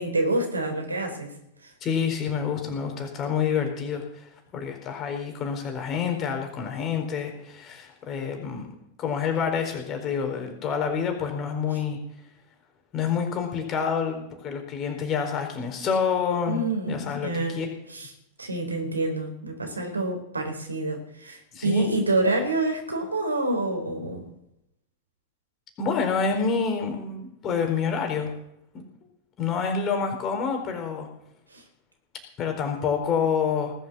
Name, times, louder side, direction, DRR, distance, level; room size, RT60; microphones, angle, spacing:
voice 1, 0.0-1.3 1.6-1.7 11.7-11.8 16.5-17.6 17.9-18.1 18.4-24.2 31.5-31.6, right 2 dB, 80° right, 4 dB, 4.1 m, -27 dB
voice 2, 1.8-8.7 9.0-12.0 12.9-17.7 21.5-21.9 25.8-28.3 28.7-28.8 29.4-31.1 32.4-33.7, left 6 dB, 30° left, 4 dB, 4.3 m, -28 dB
19.0 x 8.2 x 7.1 m, 0.80 s
figure-of-eight pair, 90°, 0 cm